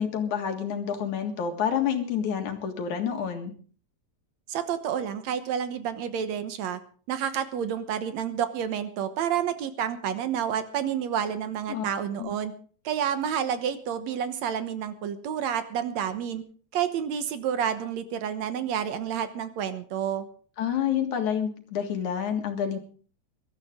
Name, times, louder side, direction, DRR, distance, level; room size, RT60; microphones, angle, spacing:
voice 1, 0.0-3.5 11.7-11.8 12.2-12.3 20.6-22.8, left 8 dB, 80° left, 5 dB, 3.2 m, -28 dB
voice 2, 4.5-6.8 7.1-12.5 12.8-16.4 16.7-20.3, right 8 dB, 70° right, 10 dB, 2.3 m, -29 dB
21.5 x 13.0 x 3.7 m, 0.43 s
omnidirectional pair, 3.3 m